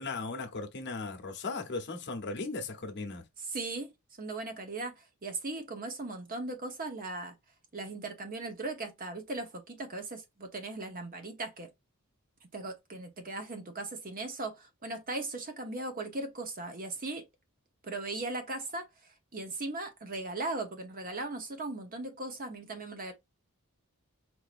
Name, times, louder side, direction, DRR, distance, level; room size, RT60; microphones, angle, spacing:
voice 1, 0.0-3.2, left 3 dB, 50° left, 1.0 m, -37 dB
voice 2, 3.4-3.9 4.2-7.4 7.7-11.7 12.5-17.3 17.8-18.9 19.3-23.1, right 2 dB, 40° right, 0.9 m, -38 dB
4.5 x 2.8 x 2.5 m
head